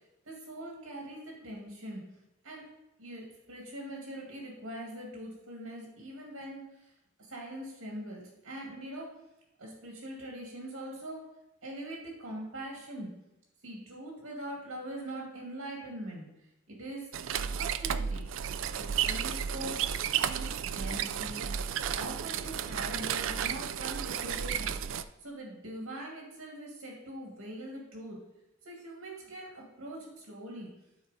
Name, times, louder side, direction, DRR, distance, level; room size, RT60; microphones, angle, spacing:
voice 1, 0.2-2.0 2.4-2.6 3.0-6.9 7.2-9.1 9.6-11.2 11.6-13.1 13.6-16.3 16.7-17.1 17.6-18.3 18.8-19.8 20.2-21.5 21.9-28.2 28.6-30.7, right 1 dB, 90° right, -2 dB, 2.1 m, -42 dB
sound 1, 17.1-25.0, right 8 dB, 65° right, 0.4 m, -33 dB
11.5 x 4.4 x 4.1 m, 0.94 s
head